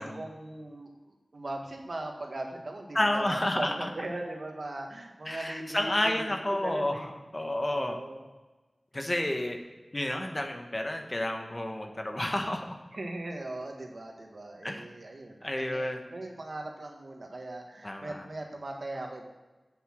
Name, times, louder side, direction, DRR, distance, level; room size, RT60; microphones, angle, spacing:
voice 1, 0.0-7.1 7.7-8.2 12.9-19.2, right 2 dB, 65° right, 2 dB, 1.6 m, -39 dB
voice 2, 2.9-3.7 5.2-7.0 7.3-8.0 8.9-9.6 9.9-12.7 14.6-14.8 15.4-16.0 17.8-18.2, left 1 dB, 30° left, 4 dB, 1.3 m, -30 dB
8.2 x 8.0 x 6.3 m, 1.2 s
wide cardioid pair, 70°, 0 cm